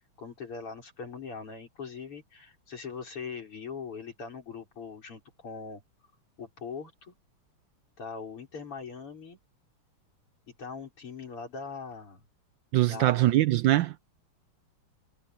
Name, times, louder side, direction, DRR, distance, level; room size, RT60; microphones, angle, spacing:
voice 1, 0.2-5.8 6.4-7.2 8.0-9.4 10.6-12.2 12.8-13.2, left 5 dB, 80° left, 5.8 m, -41 dB
voice 2, 12.7-14.0, right 15 dB, 75° right, 1.1 m, -23 dB
omnidirectional pair, 2.4 m